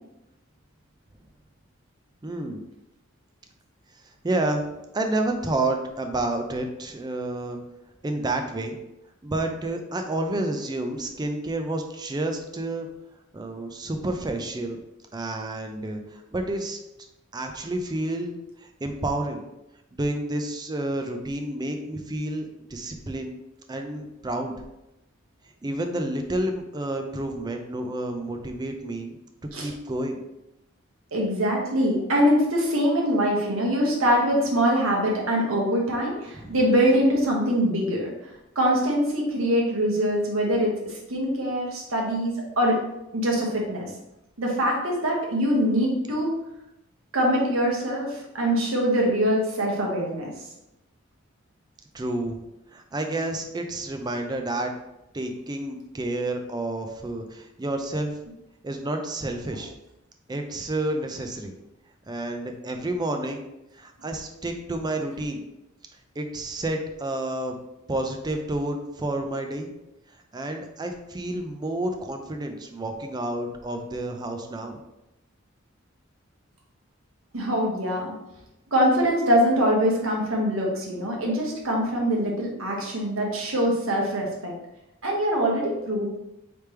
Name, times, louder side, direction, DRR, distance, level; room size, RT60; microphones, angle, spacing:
voice 1, 2.2-2.6 4.2-4.6 4.9-7.6 8.0-8.8 9.2-12.9 13.3-14.8 15.1-16.8 17.3-18.3 18.8-19.4 19.9-23.4 23.7-24.5 25.6-29.2 29.6-30.2 36.3-36.5 51.9-52.4 52.7-54.7 55.1-58.2 58.6-59.7 60.3-61.5 62.1-63.4 63.8-65.4 66.2-67.6 67.9-69.7 70.3-74.8, right 1 dB, 20° right, 5 dB, 0.4 m, -30 dB
voice 2, 31.1-38.1 38.5-42.8 43.1-43.9 44.4-46.3 47.1-50.3 77.3-78.1 78.7-84.5 85.0-86.1, equal, 80° right, -1 dB, 1.2 m, -23 dB
3.4 x 3.3 x 4.4 m, 0.90 s
head